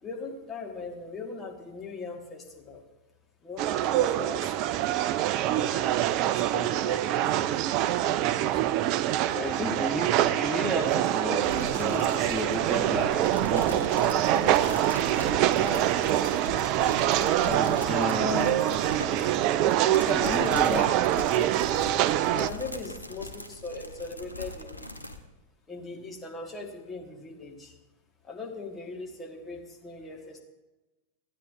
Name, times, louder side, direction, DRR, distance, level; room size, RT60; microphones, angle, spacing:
voice 1, 0.0-2.8 3.4-5.1 5.6-5.9 6.3-7.6 8.0-8.9 9.3-9.9 20.2-20.6 22.3-25.0 25.7-27.8 28.2-30.4, left 3 dB, 20° left, 0 dB, 1.7 m, -40 dB
sound 1, 3.6-22.5, right 13 dB, 40° right, 0.3 m, -25 dB
voice 2, 9.1-14.8 15.5-16.2 17.4-19.5 20.0-20.8 21.1-21.5, left 1 dB, ahead, 0 dB, 0.9 m, -34 dB
sound 2, 11.4-25.2, left 1 dB, 90° right, 0.8 m, -40 dB
15.0 x 9.2 x 2.7 m, 1.1 s
figure-of-eight pair, 90°, 0 cm